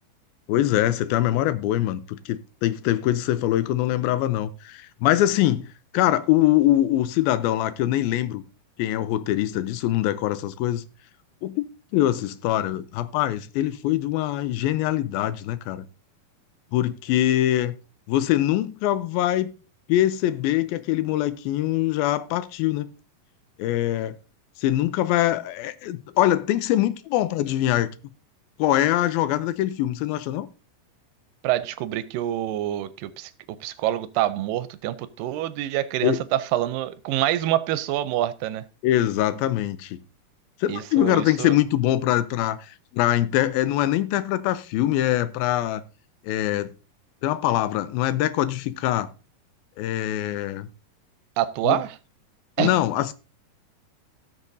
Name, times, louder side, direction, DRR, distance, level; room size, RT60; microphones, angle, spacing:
voice 1, 0.5-5.7 5.9-8.4 8.8-10.8 11.4-11.7 11.9-15.9 16.7-17.8 18.1-19.5 19.9-22.9 23.6-24.2 24.6-27.9 28.6-30.5 36.0-36.2 38.8-40.0 40.6-45.8 46.2-46.7 47.2-49.1 49.8-50.7 51.6-51.8 52.6-53.1, left 13 dB, 90° left, 2.5 m, -23 dB
voice 2, 31.4-33.3 33.6-38.6 40.7-41.5 51.4-52.0 52.6-52.7, right 13 dB, 80° right, 2.2 m, -26 dB
17.5 x 6.4 x 2.6 m
omnidirectional pair, 4.1 m